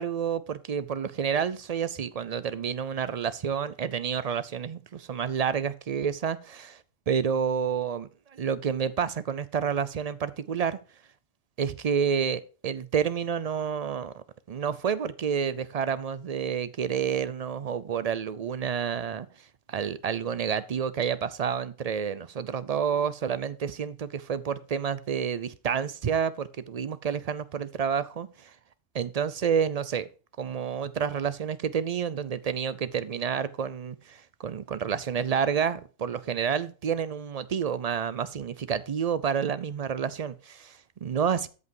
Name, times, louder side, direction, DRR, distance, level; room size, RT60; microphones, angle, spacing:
voice 1, 0.0-10.8 11.6-19.3 19.7-28.5 28.9-30.1 30.4-41.5, right 7 dB, 70° right, 0.3 m, -29 dB
13.5 x 5.5 x 4.7 m
omnidirectional pair, 1.4 m